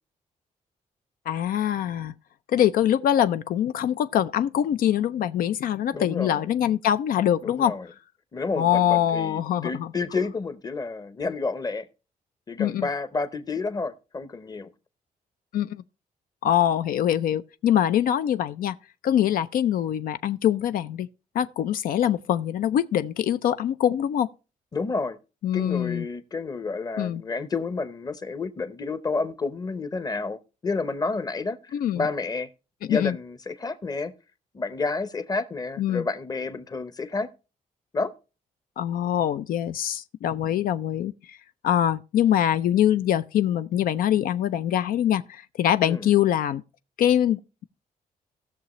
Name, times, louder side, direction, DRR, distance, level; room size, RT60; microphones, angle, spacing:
voice 1, 1.3-2.1 2.5-7.7 8.6-9.9 12.6-12.9 15.5-15.8 16.4-18.8 19.0-21.1 21.3-24.3 25.4-26.0 27.0-27.2 31.7-32.1 32.9-33.2 35.8-36.0 38.8-41.4 41.6-46.6 47.0-47.6, left 10 dB, 80° left, 0.5 m, -24 dB
voice 2, 5.9-6.5 7.4-7.9 8.3-11.9 12.5-14.7 24.7-25.2 25.5-32.5 32.9-34.1 34.5-37.3 37.9-38.1 45.8-46.1, left 3 dB, 25° left, 0.8 m, -30 dB
18.0 x 6.7 x 3.1 m
cardioid pair, 125°, 15 cm